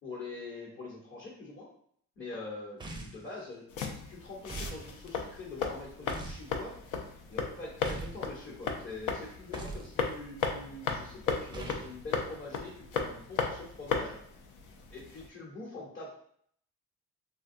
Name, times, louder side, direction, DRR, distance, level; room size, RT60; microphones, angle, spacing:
voice 1, 0.0-1.7 2.2-3.7 4.0-6.7 7.3-14.2 14.9-16.1, left 3 dB, 40° left, -7 dB, 1.0 m, -44 dB
sound 1, 2.8-3.3 4.5-4.8 6.1-6.5 7.8-8.2 9.5-9.9 11.5-11.9, right 3 dB, 15° right, 0.5 m, -41 dB
sound 2, 3.7-15.3, left 5 dB, 85° left, 0.5 m, -36 dB
3.5 x 2.1 x 2.5 m, 0.64 s
cardioid pair, 90°, 30 cm